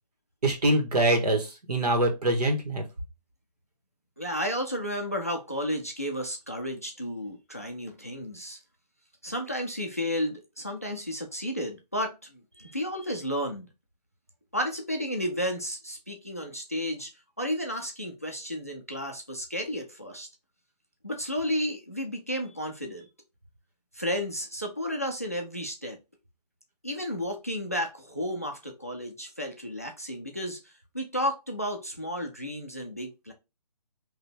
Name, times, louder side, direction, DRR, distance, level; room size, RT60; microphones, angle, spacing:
voice 1, 0.4-2.8, right 1 dB, 70° right, 1.7 m, -24 dB
voice 2, 4.2-8.6 9.2-13.7 14.5-17.1 17.4-20.3 21.0-23.1 23.9-26.0 26.8-33.3, equal, 20° left, 0.4 m, -32 dB
4.5 x 2.9 x 3.5 m
hypercardioid pair, 180°, 21 cm